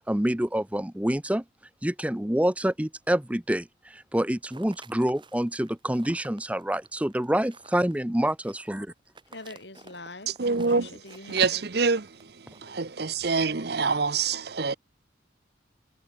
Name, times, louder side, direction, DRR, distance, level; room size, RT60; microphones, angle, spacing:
voice 1, 0.1-1.4 1.8-8.9, right 1 dB, 5° right, 0.7 m, -27 dB
sound 1, 4.3-13.4, right 3 dB, 25° right, 4.0 m, -52 dB
voice 2, 9.3-10.4 10.7-11.7, left 2 dB, 65° left, 7.5 m, -43 dB
voice 3, 10.4-10.9 11.3-12.1 12.6-14.8, right 4 dB, 55° right, 0.9 m, -25 dB
head